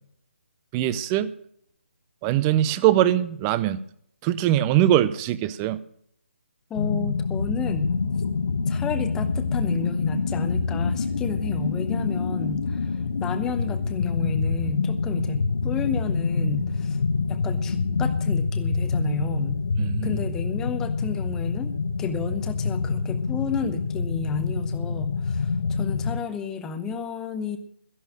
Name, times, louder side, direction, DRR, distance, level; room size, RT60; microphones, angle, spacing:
voice 1, 0.7-1.3 2.2-3.8 4.2-5.8 19.8-20.2, right 12 dB, 15° right, 16 dB, 0.4 m, -22 dB
sound 1, 6.7-26.2, left 4 dB, 60° left, 0.9 m, -26 dB
voice 2, 6.7-7.9 8.7-17.0 17.3-19.6 20.0-21.7 22.0-27.6, left 5 dB, 10° left, 9 dB, 0.8 m, -32 dB
13.5 x 11.0 x 6.3 m, 0.66 s
hypercardioid pair, 160°, 7 cm